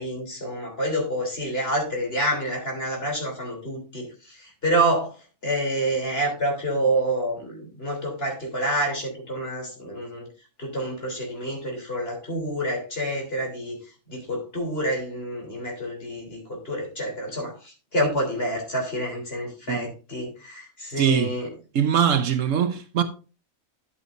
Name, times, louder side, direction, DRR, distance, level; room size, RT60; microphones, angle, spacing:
voice 1, 0.0-5.1 5.4-10.3 10.6-13.8 14.1-21.5, right 1 dB, 45° left, 3.6 m, -28 dB
voice 2, 21.0-21.3 21.7-23.0, right 8 dB, 70° right, 1.1 m, -22 dB
11.0 x 8.1 x 2.6 m
omnidirectional pair, 1.4 m